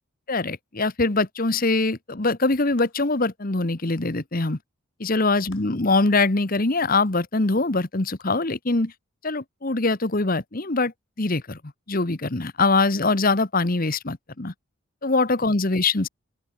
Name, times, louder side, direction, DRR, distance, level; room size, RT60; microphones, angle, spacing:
voice 1, 0.3-4.6 5.0-8.9 9.2-10.9 11.2-11.6 11.9-14.5 15.0-16.1, left 3 dB, 40° left, 1.2 m, -23 dB
sound 1, 2.8-3.4 5.5-6.1 8.2-8.3, left 4 dB, 55° left, 5.5 m, -52 dB
open air
head